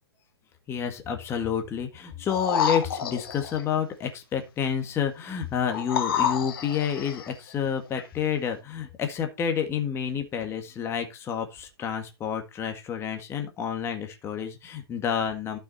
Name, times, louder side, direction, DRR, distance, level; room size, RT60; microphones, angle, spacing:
voice 1, 0.7-15.6, left 8 dB, 20° left, 5 dB, 1.8 m, -29 dB
sound 1, 2.3-3.6 5.7-7.3 8.0-8.1, left 8 dB, 60° left, 2.3 m, -28 dB
12.0 x 6.5 x 4.1 m, 0.24 s
hypercardioid pair, 135°, 13 cm